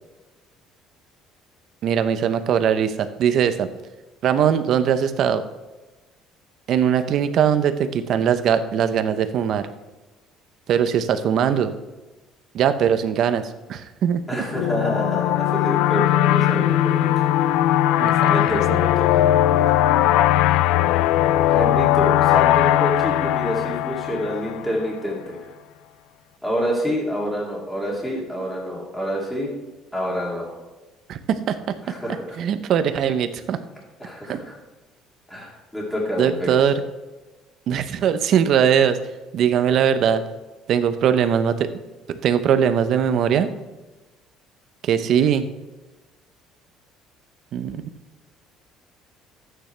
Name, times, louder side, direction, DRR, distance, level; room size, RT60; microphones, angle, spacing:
voice 1, 1.8-3.7 4.2-5.4 6.7-9.7 10.7-11.7 12.5-14.4 18.0-18.5 31.1-31.6 32.4-33.6 34.3-34.4 36.2-36.8 37.7-39.0 39.3-40.2 40.7-41.7 42.2-43.5 44.8-45.5 47.5-47.8, right 8 dB, 50° right, 10 dB, 0.8 m, -20 dB
voice 2, 14.3-17.2 18.3-19.7 21.5-25.4 26.4-29.5 29.9-30.5 31.8-32.3 34.0-34.6 35.3-36.5, equal, 5° left, -4 dB, 2.8 m, -27 dB
sound 1, 14.5-24.9, left 13 dB, 85° left, 0.4 m, -19 dB
13.5 x 8.9 x 3.4 m, 1.2 s
cardioid pair, 150°, 0 cm